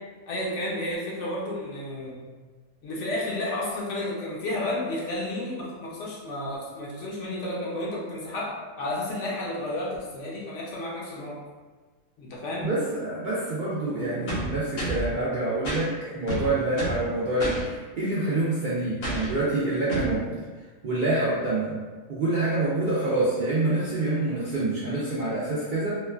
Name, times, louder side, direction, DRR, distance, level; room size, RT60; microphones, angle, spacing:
voice 1, 0.3-2.2 2.8-11.4 12.2-12.7, left 1 dB, 70° left, -4 dB, 1.0 m, -32 dB
voice 2, 12.6-20.4 20.8-21.8 22.1-25.9, right 2 dB, 60° right, -9 dB, 0.5 m, -26 dB
sound 1, 14.3-15.1 15.6-15.8 16.3-17.0 17.4-17.6 19.0-19.3 19.9-20.1, right 1 dB, 90° left, 1.3 m, -30 dB
3.0 x 2.2 x 2.3 m, 1.4 s
omnidirectional pair, 1.3 m